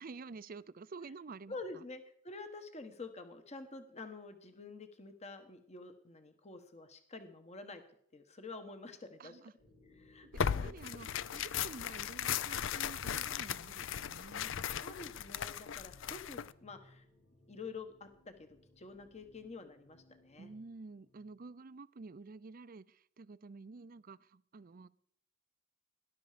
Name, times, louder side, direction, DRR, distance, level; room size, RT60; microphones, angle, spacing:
voice 1, 0.0-1.8 9.2-9.5 10.6-14.5 20.4-24.9, right 4 dB, 45° right, 17 dB, 0.5 m, -50 dB
voice 2, 1.5-7.8 8.1-9.4 10.0-10.7 14.7-17.0 17.5-18.1 18.4-20.5, left 3 dB, 35° left, 8 dB, 1.2 m, -48 dB
sound 1, 9.6-21.5, left 1 dB, 90° left, 4.7 m, -66 dB
Tearing, 10.3-16.5, left 8 dB, 65° left, 0.5 m, -37 dB
18.5 x 11.5 x 5.1 m, 0.66 s
head